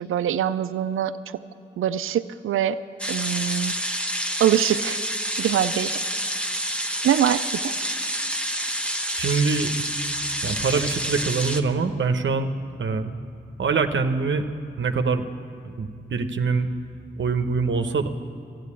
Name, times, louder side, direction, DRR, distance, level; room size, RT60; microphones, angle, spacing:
voice 1, 0.0-1.4 1.8-2.8 3.1-3.8 4.4-5.0 5.4-5.9 7.0-7.7, right 10 dB, 85° right, 12 dB, 0.4 m, -23 dB
frying steak, 3.0-11.6, equal, 5° left, 0.9 m, -28 dB
voice 2, 9.2-9.7 10.4-12.5 12.8-13.1 13.6-14.5 14.7-15.2 15.6-16.7 17.2-18.1, right 4 dB, 65° right, 7 dB, 0.8 m, -24 dB
13.5 x 9.3 x 8.4 m, 2.7 s
cardioid pair, 40°, 21 cm